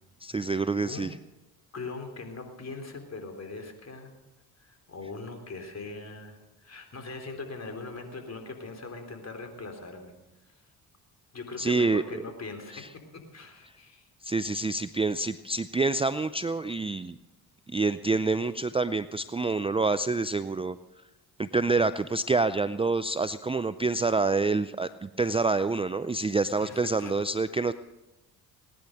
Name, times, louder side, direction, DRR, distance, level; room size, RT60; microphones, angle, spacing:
voice 1, 0.2-1.1 11.6-12.2 12.7-12.9 14.2-17.2 17.7-20.8 21.4-27.7, right 3 dB, 15° right, 14 dB, 0.5 m, -27 dB
voice 2, 1.7-4.1 4.6-10.1 10.5-10.6 11.3-12.8 13.3-14.1 26.6-27.1, left 3 dB, 40° left, 5 dB, 3.7 m, -41 dB
19.0 x 10.5 x 6.4 m, 1.0 s
supercardioid pair, 55°, 41 cm